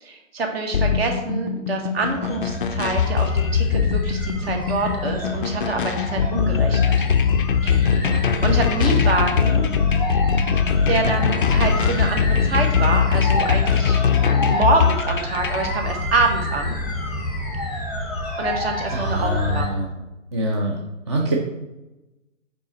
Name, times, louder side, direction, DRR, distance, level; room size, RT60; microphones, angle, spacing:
voice 1, 0.0-6.9 7.6-8.1 8.4-9.7 10.5-14.0 14.5-16.7 18.4-19.7, right 3 dB, 50° right, 3 dB, 1.5 m, -26 dB
sound 1, 0.7-15.7, left 7 dB, 40° left, 0.4 m, -21 dB
sound 2, 2.0-19.7, left 2 dB, ahead, 0.9 m, -28 dB
voice 2, 18.9-19.9 20.3-21.3, equal, 20° right, -1 dB, 0.4 m, -24 dB
5.3 x 4.8 x 4.1 m, 1.0 s
figure-of-eight pair, 140°, 40 cm